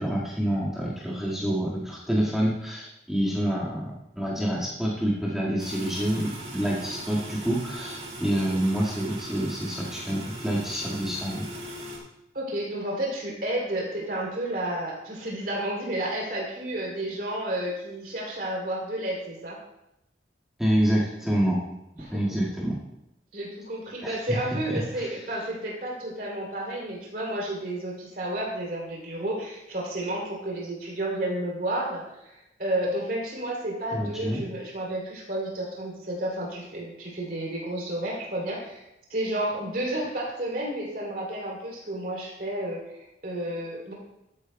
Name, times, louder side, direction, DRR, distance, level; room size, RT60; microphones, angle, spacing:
voice 1, 0.0-11.5 20.6-21.6 22.1-22.8 24.0-24.4 24.7-25.2 33.9-34.4, equal, ahead, -7 dB, 1.8 m, -27 dB
sound 1, 5.6-12.0, right 1 dB, 35° right, 1.8 m, -40 dB
voice 2, 12.3-19.6 22.0-22.2 23.3-38.8 39.1-43.9, right 1 dB, 55° right, -4 dB, 3.1 m, -31 dB
13.0 x 9.6 x 2.3 m, 0.86 s
head